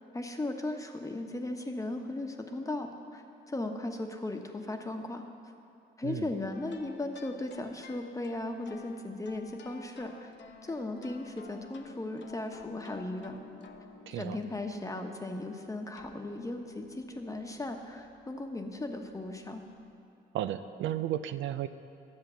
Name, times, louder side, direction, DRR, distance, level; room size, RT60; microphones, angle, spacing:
voice 1, 0.1-5.2 6.0-10.3 10.6-13.4 14.1-19.6, left 2 dB, 15° left, 4 dB, 1.0 m, -37 dB
sound 1, 6.5-19.9, left 5 dB, 65° left, 0.9 m, -53 dB
voice 2, 14.1-14.4 20.3-21.7, right 11 dB, 75° right, 11 dB, 0.5 m, -33 dB
11.0 x 7.6 x 6.9 m, 2.5 s
cardioid pair, 90°, 20 cm